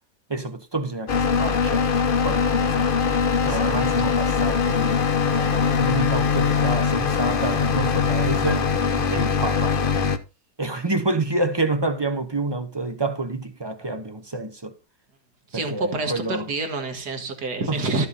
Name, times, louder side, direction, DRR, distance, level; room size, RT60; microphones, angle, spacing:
voice 1, 0.3-1.9 2.2-2.9 3.5-8.7 9.1-9.8 10.6-14.8 15.5-16.5 17.7-18.1, right 2 dB, 25° right, 0.5 m, -28 dB
sound 1, 1.1-10.2, left 6 dB, 40° left, 0.8 m, -22 dB
voice 2, 3.4-3.8 9.0-9.1 15.5-18.1, right 3 dB, 65° right, 2.4 m, -28 dB
13.0 x 7.2 x 4.1 m
omnidirectional pair, 1.8 m